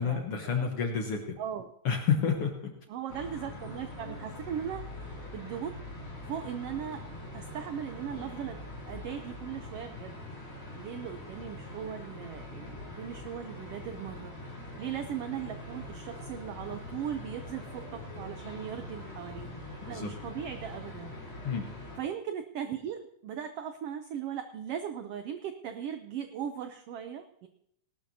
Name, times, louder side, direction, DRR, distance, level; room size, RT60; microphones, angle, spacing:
voice 1, 0.0-1.4 1.8-2.7 19.9-20.1 21.4-21.7, left 6 dB, 60° left, 3 dB, 1.8 m, -29 dB
voice 2, 1.4-1.7 2.9-5.8 6.2-7.0 7.3-8.6 8.9-10.2 10.7-14.3 14.8-19.5 19.9-21.1 22.0-27.5, right 8 dB, 75° right, 7 dB, 1.4 m, -38 dB
sound 1, 3.1-22.0, left 1 dB, 25° left, 3.5 m, -43 dB
19.5 x 12.5 x 2.8 m, 0.72 s
omnidirectional pair, 3.4 m